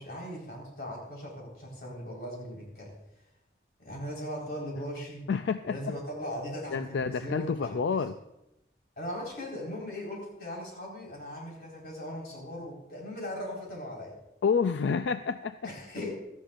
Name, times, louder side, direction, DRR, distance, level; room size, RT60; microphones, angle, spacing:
voice 1, 0.0-2.9 3.8-5.2 5.7-8.0 9.0-14.2 15.6-16.2, equal, 60° left, -2 dB, 4.3 m, -39 dB
voice 2, 5.3-6.0 6.7-8.2 14.4-15.7, left 5 dB, 90° left, 10 dB, 0.4 m, -29 dB
16.5 x 13.0 x 2.5 m, 0.88 s
head